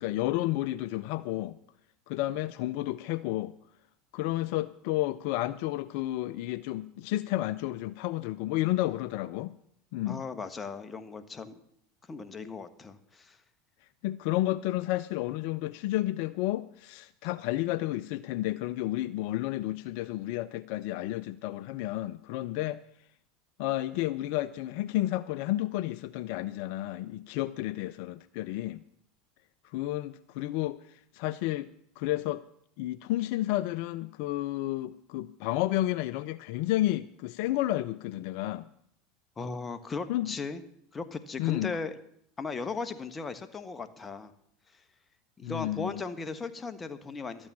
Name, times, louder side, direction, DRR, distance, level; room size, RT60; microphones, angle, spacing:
voice 1, 0.0-1.6 2.1-3.5 4.1-9.5 9.9-10.2 14.0-22.8 23.6-28.8 29.6-31.7 32.0-32.4 32.8-38.7 40.1-40.3 41.4-41.7 45.4-46.0, left 16 dB, 65° left, 14 dB, 0.4 m, -31 dB
voice 2, 10.0-11.5 12.1-13.4 39.4-40.6 40.9-41.9 42.4-44.3 45.4-47.5, left 4 dB, 25° left, 11 dB, 1.3 m, -37 dB
12.5 x 8.8 x 7.3 m, 0.69 s
hypercardioid pair, 85°, 0 cm